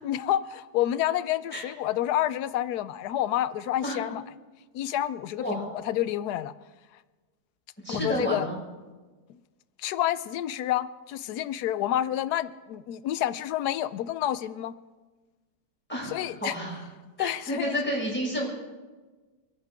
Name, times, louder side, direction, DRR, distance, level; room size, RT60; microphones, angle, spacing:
voice 1, 0.0-4.2 4.7-6.5 7.9-8.5 9.3-9.4 9.8-14.7 16.0-16.6 17.2-17.8, left 12 dB, 75° left, 15 dB, 1.2 m, -29 dB
voice 2, 7.8-8.6 15.9-16.1 16.4-16.8 17.2-18.5, equal, 5° left, -4 dB, 5.9 m, -30 dB
30.0 x 10.5 x 3.6 m, 1.3 s
omnidirectional pair, 1.8 m